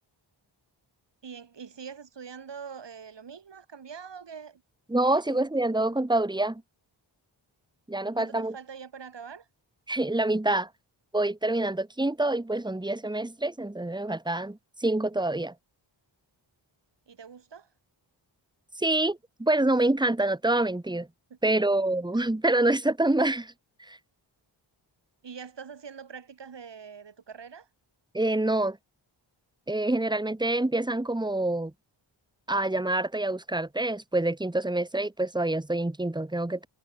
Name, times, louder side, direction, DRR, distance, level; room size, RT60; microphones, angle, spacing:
voice 1, 1.2-4.6 5.1-5.5 8.1-9.5 17.1-17.7 21.3-21.7 25.2-27.7, right 6 dB, 60° right, 5.4 m, -44 dB
voice 2, 4.9-6.6 7.9-8.5 9.9-10.7 11.1-15.5 18.8-21.1 21.4-23.5 23.8-24.0 28.1-28.8 29.7-31.7 32.5-36.7, right 2 dB, 10° right, 2.2 m, -26 dB
wide cardioid pair, 145°, 47 cm